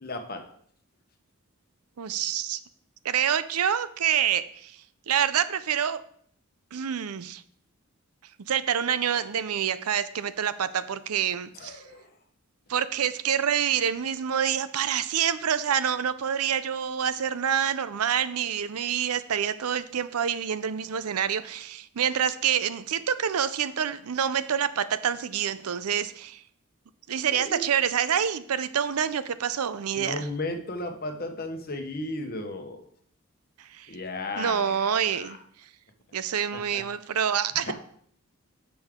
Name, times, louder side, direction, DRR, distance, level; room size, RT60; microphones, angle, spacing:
voice 1, 0.0-0.4 11.6-12.1 27.3-27.7 30.0-32.8 33.9-35.4 36.5-36.8 37.7-37.8, left 2 dB, 40° left, 5 dB, 1.0 m, -35 dB
voice 2, 2.0-2.6 3.0-6.0 6.7-7.4 8.5-11.8 12.7-26.4 27.1-30.3 33.6-34.0 34.4-35.7 36.1-37.7, right 8 dB, 85° right, 14 dB, 0.5 m, -27 dB
9.7 x 6.2 x 3.7 m, 0.62 s
head